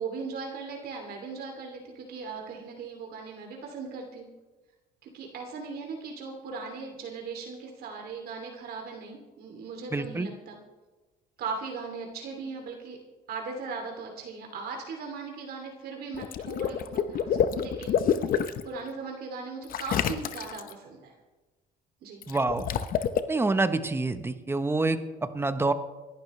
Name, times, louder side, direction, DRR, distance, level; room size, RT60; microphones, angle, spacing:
voice 1, 0.0-4.3 5.0-10.6 11.4-13.0 13.3-18.3 18.6-21.1 22.0-22.2, right 4 dB, 65° right, 1 dB, 2.8 m, -38 dB
voice 2, 9.9-10.3 22.3-22.6 23.3-25.7, right 3 dB, 15° right, 10 dB, 1.0 m, -27 dB
Water / Liquid, 16.1-18.6 19.7-20.7 22.2-23.2, left 8 dB, 60° left, 0.9 m, -27 dB
26.0 x 11.5 x 3.3 m, 1.2 s
cardioid pair, 110°, 17 cm